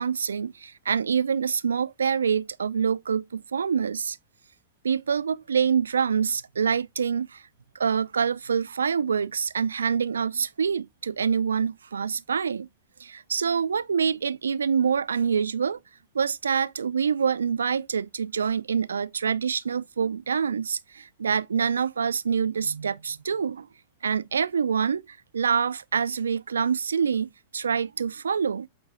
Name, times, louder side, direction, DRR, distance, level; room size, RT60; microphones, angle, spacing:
voice 1, 0.0-4.2 4.8-7.4 7.7-12.7 13.0-15.8 16.1-23.7 24.0-28.7, right 6 dB, 90° right, 0.3 m, -26 dB
8.2 x 3.9 x 3.4 m
hypercardioid pair, 105°, 0 cm